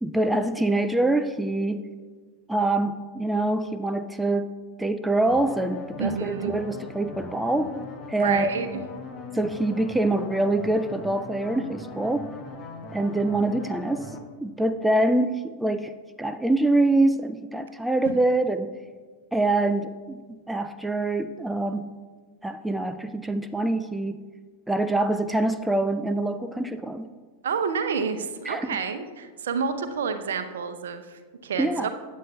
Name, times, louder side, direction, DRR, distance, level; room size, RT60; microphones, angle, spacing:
voice 1, 0.0-1.9 2.5-4.5 4.8-7.8 8.1-8.5 9.3-12.3 12.9-14.1 14.4-18.7 19.3-21.9 22.4-24.2 24.7-27.1 28.5-28.8 31.6-31.9, right 2 dB, 5° right, 10 dB, 0.4 m, -25 dB
sound 1, 5.3-14.2, left 3 dB, 25° left, 1.1 m, -40 dB
voice 2, 6.0-6.5 8.2-8.8 18.1-18.2 27.4-31.9, right 5 dB, 65° right, 8 dB, 0.7 m, -29 dB
15.5 x 9.4 x 2.3 m, 1.5 s
figure-of-eight pair, 90°, 0 cm